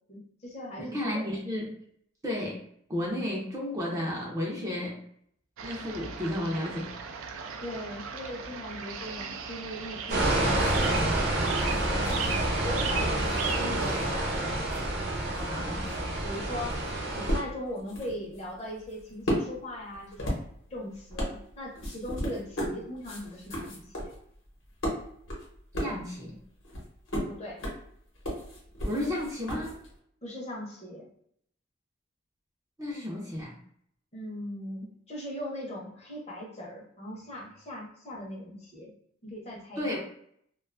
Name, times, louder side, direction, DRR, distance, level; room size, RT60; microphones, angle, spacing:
voice 1, 0.1-1.3 7.6-11.0 11.6-12.4 12.6-14.4 15.3-15.9 16.2-16.8 17.1-20.3 20.7-24.1 27.2-27.6 30.2-31.1 34.1-38.9 39.2-40.0, left 1 dB, 30° left, -2 dB, 0.7 m, -39 dB
voice 2, 0.8-1.7 2.2-2.6 2.9-5.0 5.6-6.9 15.5-15.8 25.8-26.4 28.8-29.8 32.8-33.6 39.8-40.0, left 1 dB, 15° right, -3 dB, 0.4 m, -33 dB
sound 1, 5.6-14.0, right 6 dB, 85° right, 0.3 m, -38 dB
sound 2, 10.1-14.4 14.6-30.0, equal, 70° left, 0.9 m, -36 dB
sound 3, 10.1-17.4, right 1 dB, 55° right, 0.8 m, -28 dB
2.5 x 2.3 x 2.4 m, 0.67 s
head